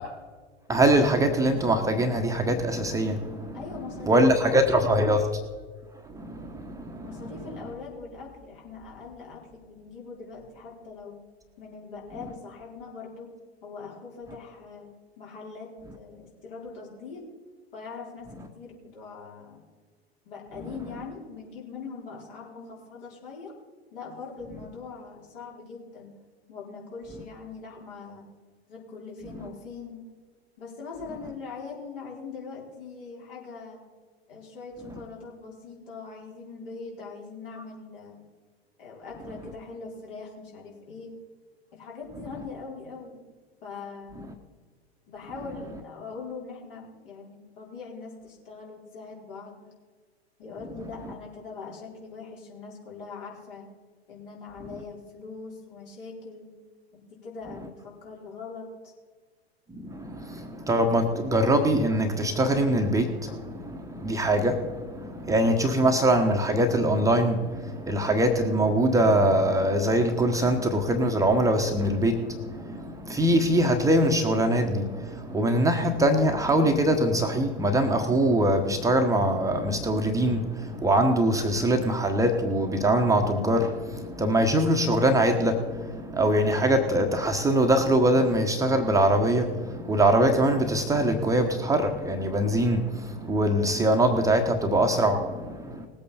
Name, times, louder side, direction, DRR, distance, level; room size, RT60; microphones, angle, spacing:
voice 1, 0.7-3.6 4.0-5.3 6.1-7.2 59.7-95.9, right 1 dB, 10° right, 4 dB, 1.1 m, -23 dB
voice 2, 3.5-5.2 7.0-11.2 11.6-13.3 13.6-14.9 15.2-15.7 15.9-17.3 17.7-19.6 20.3-23.5 23.9-26.1 26.5-28.3 28.7-30.0 30.6-33.8 34.3-38.2 38.8-41.1 41.7-43.2 43.6-44.3 45.1-49.6 50.4-53.6 54.1-56.5 57.2-58.9, left 4 dB, 60° left, -3 dB, 4.5 m, -42 dB
19.5 x 8.4 x 4.3 m, 1.5 s
figure-of-eight pair, 90°, 32 cm